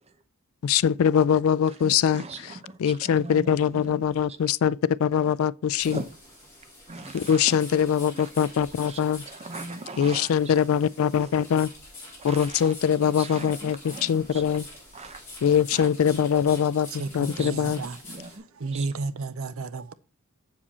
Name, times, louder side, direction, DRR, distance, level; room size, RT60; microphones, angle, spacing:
voice 1, 0.6-2.2 2.8-6.0 7.1-9.2 10.0-11.7 12.2-14.7 15.4-16.9 17.1-17.8, left 8 dB, 65° left, 0.3 m, -23 dB
voice 2, 1.8-4.0 5.8-6.1 6.9-7.7 8.1-8.3 8.9-10.5 11.2-11.3 12.2-12.7 13.0-14.4 14.9-15.2 15.7-15.9 17.2-17.8 18.1-18.4 18.7-18.8, right 3 dB, 30° right, 0.8 m, -40 dB
sound 1, 5.8-18.4, left 2 dB, 10° left, 4.5 m, -46 dB
voice 3, 17.0-18.0 18.6-19.9, right 3 dB, 65° right, 0.5 m, -32 dB
7.4 x 7.3 x 4.2 m
head